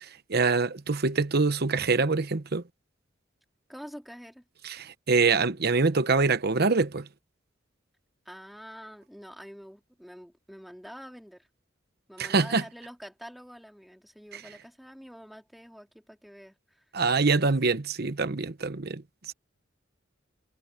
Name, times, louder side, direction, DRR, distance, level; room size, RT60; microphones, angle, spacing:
voice 1, 0.0-2.6 4.6-7.1 12.2-12.6 14.3-14.4 16.9-19.3, right 4 dB, 55° right, 1.0 m, -25 dB
voice 2, 3.7-4.4 8.2-11.5 12.1-16.8, equal, ahead, 2.7 m, -46 dB
head